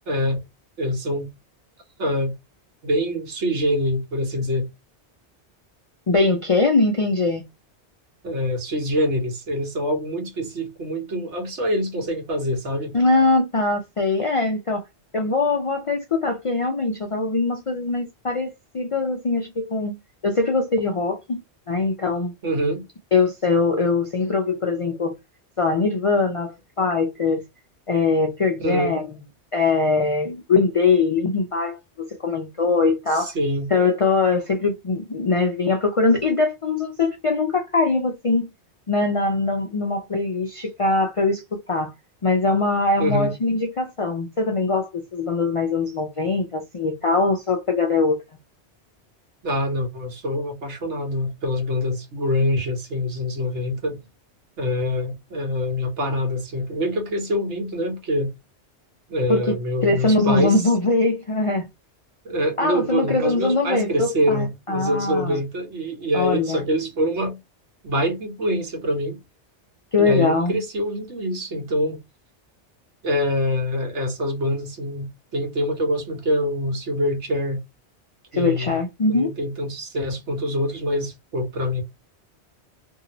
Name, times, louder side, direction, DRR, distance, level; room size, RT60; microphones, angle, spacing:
voice 1, 0.1-0.4 0.8-1.3 2.0-2.3 2.8-4.7 8.2-12.9 22.4-22.8 28.6-28.9 33.1-33.7 43.0-43.3 49.4-54.0 54.6-58.3 59.1-60.6 62.2-67.4 67.8-69.2 70.0-72.0 73.0-77.6 78.3-78.8 79.1-81.8, equal, 85° right, 1.4 m, -25 dB
voice 2, 6.1-7.4 12.9-14.8 15.1-20.0 20.2-21.4 21.7-22.3 23.1-25.1 25.6-27.4 27.9-29.1 29.5-33.3 33.7-38.5 38.9-41.9 42.2-48.2 59.3-59.6 59.8-61.7 62.6-65.4 66.1-66.6 69.9-70.5 78.3-79.3, left 3 dB, 55° left, 0.3 m, -22 dB
2.7 x 2.7 x 2.8 m
omnidirectional pair, 1.2 m